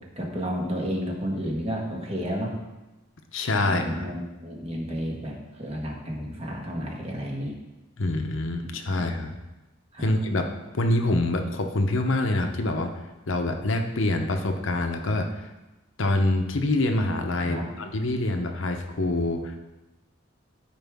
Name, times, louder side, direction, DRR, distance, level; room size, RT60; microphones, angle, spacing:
voice 1, 0.2-2.5 3.6-7.5 8.9-9.2 9.9-10.1 17.4-17.7, equal, 30° right, -1 dB, 1.4 m, -31 dB
voice 2, 3.3-4.0 8.0-9.3 10.0-10.5 10.7-12.9 13.3-15.5 16.0-19.5, left 2 dB, 65° left, 5 dB, 0.8 m, -25 dB
13.0 x 5.0 x 3.6 m, 1.1 s
head